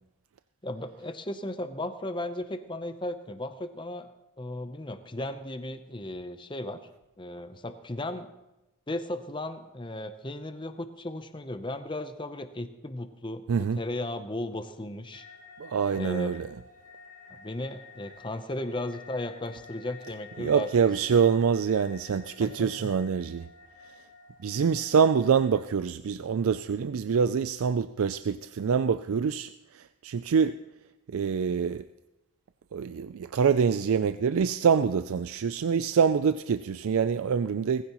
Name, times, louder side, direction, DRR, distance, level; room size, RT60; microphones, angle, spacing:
voice 1, 0.6-4.1 4.4-6.8 7.2-8.3 8.9-15.3 15.9-16.4 17.3-20.7 22.4-22.9, left 1 dB, 20° left, 10 dB, 0.7 m, -36 dB
voice 2, 13.5-13.8 15.6-16.5 20.4-23.4 24.4-29.5 30.0-30.6 31.1-31.8 32.7-37.8, right 6 dB, 75° right, 11 dB, 0.4 m, -25 dB
sound 1, 15.1-25.6, left 4 dB, 35° right, 1.4 m, -51 dB
19.5 x 15.0 x 3.0 m, 0.99 s
head